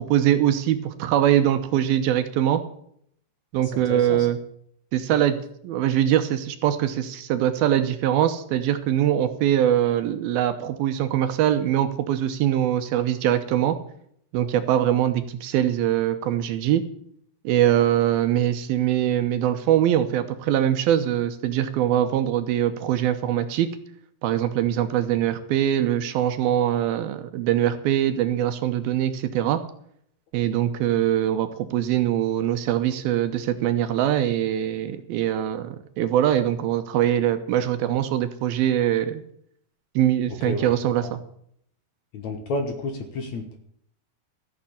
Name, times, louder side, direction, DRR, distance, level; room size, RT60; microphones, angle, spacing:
voice 1, 0.1-2.6 3.5-4.4 4.9-5.4 5.6-13.8 14.3-16.8 17.4-23.7 24.2-29.6 30.3-39.2 40.0-41.2, right 11 dB, 75° right, 9 dB, 2.6 m, -22 dB
voice 2, 3.6-4.3 5.1-5.2 40.4-40.7 41.0-41.1 42.1-43.6, left 2 dB, 55° left, 5 dB, 2.3 m, -31 dB
14.5 x 7.4 x 8.5 m, 0.68 s
omnidirectional pair, 4.6 m